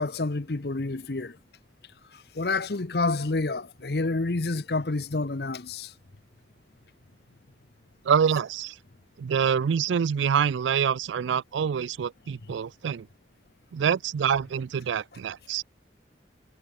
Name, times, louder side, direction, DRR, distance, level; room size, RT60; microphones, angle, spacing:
voice 1, 0.0-1.4 2.3-5.9, left 3 dB, 60° left, 0.9 m, -28 dB
voice 2, 8.0-8.8 9.2-13.1 13.7-15.6, right 7 dB, 85° right, 0.4 m, -26 dB
head